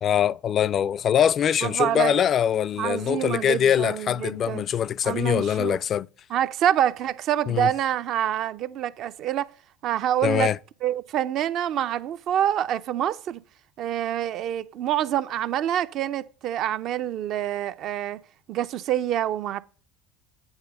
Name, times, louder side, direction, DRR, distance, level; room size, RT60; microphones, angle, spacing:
voice 1, 0.0-6.1 7.5-7.7 10.2-10.6, left 9 dB, 45° left, 0.3 m, -23 dB
voice 2, 1.6-2.2 2.8-4.6 5.0-5.8 6.3-9.5 9.8-10.5 10.8-13.4 13.8-18.2 18.5-19.6, right 11 dB, 55° right, 0.5 m, -26 dB
8.9 x 4.0 x 6.6 m
hypercardioid pair, 80°, 0 cm